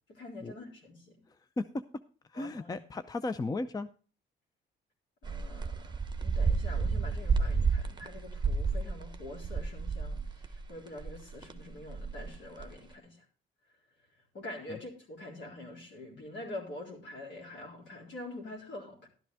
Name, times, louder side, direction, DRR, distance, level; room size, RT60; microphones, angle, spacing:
voice 1, 0.1-1.2 2.3-2.8 5.2-13.2 14.3-19.1, left 2 dB, 65° left, 0 dB, 3.9 m, -45 dB
voice 2, 2.3-3.9 14.7-14.8, left 2 dB, 20° left, 12 dB, 0.5 m, -35 dB
sound 1, 5.2-10.7 11.0-12.7, right 4 dB, 20° right, 1.0 m, -31 dB
12.5 x 10.0 x 3.4 m, 0.38 s
cardioid pair, 90°, 20 cm